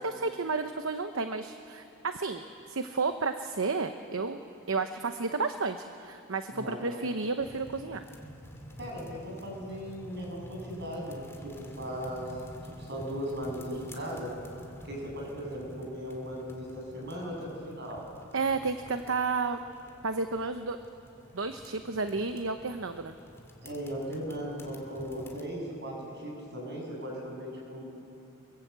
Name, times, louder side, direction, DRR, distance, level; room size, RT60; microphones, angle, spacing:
voice 1, 0.0-4.4 4.7-8.0 18.3-19.6 20.0-20.8 21.3-23.2, right 4 dB, 70° right, 8 dB, 0.9 m, -32 dB
sound 1, 7.4-25.4, equal, 15° left, 2.1 m, -49 dB
voice 2, 8.8-12.3 12.8-14.3 14.8-18.0 23.6-27.8, equal, 55° right, -1 dB, 7.3 m, -38 dB
23.5 x 22.5 x 8.2 m, 2.9 s
head